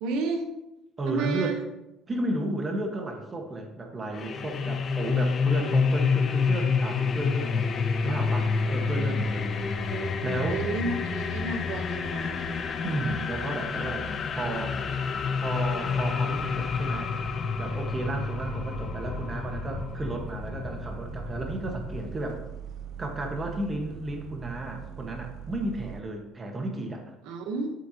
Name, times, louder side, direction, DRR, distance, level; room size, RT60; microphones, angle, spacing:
voice 1, 0.0-0.5 1.1-1.6 9.4-10.1 10.5-12.6 27.2-27.7, right 4 dB, 80° right, 5 dB, 1.2 m, -32 dB
voice 2, 1.0-1.5 2.1-7.7 8.0-9.9 10.2-10.6 12.8-14.8 15.4-17.2 17.6-22.4 23.0-27.1, right 2 dB, 20° right, 2 dB, 1.5 m, -33 dB
sound 1, 4.1-22.1, left 5 dB, 35° left, 0.8 m, -29 dB
sound 2, 7.8-26.0, right 9 dB, 50° right, 0.6 m, -44 dB
11.5 x 7.4 x 3.0 m, 0.91 s
cardioid pair, 145°, 0 cm